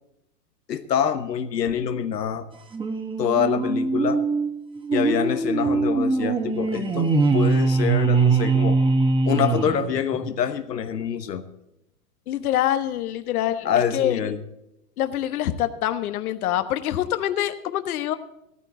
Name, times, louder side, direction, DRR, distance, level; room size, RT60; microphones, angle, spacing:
voice 1, 0.7-2.4 3.2-4.2 4.9-8.8 9.2-11.4 13.6-14.4, left 8 dB, 85° left, 8 dB, 1.2 m, -25 dB
sound 1, 2.7-10.3, right 4 dB, 10° right, 1.2 m, -22 dB
voice 2, 12.3-14.2 15.0-18.2, left 12 dB, 65° left, 10 dB, 1.3 m, -25 dB
15.5 x 14.0 x 3.8 m, 0.86 s
hypercardioid pair, 120°, 47 cm